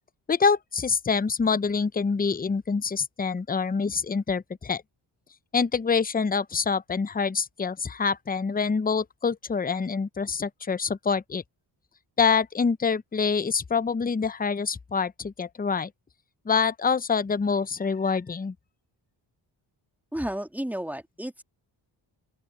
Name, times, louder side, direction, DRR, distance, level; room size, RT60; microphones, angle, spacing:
voice 1, 0.3-4.8 5.5-11.4 12.2-15.9 16.5-18.5, left 5 dB, 20° left, 0.6 m, -26 dB
voice 2, 20.1-21.4, right 1 dB, 5° right, 1.8 m, -32 dB
open air
cardioid pair, 55°, 49 cm